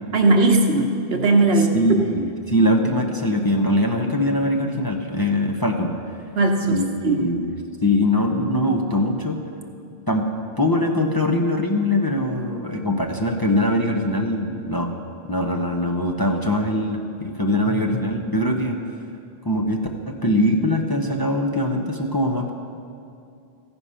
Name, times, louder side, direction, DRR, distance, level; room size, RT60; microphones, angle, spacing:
voice 1, 0.1-1.8 6.3-6.8 7.0-7.2, right 2 dB, 70° right, 3 dB, 1.3 m, -18 dB
voice 2, 1.6-6.0 6.7-7.5 7.8-9.4 10.1-10.2 10.6-14.9 15.3-18.8 19.4-19.8 20.1-22.5, left 1 dB, 25° left, 2 dB, 0.7 m, -22 dB
15.0 x 9.9 x 5.7 m, 2.5 s
omnidirectional pair, 1.1 m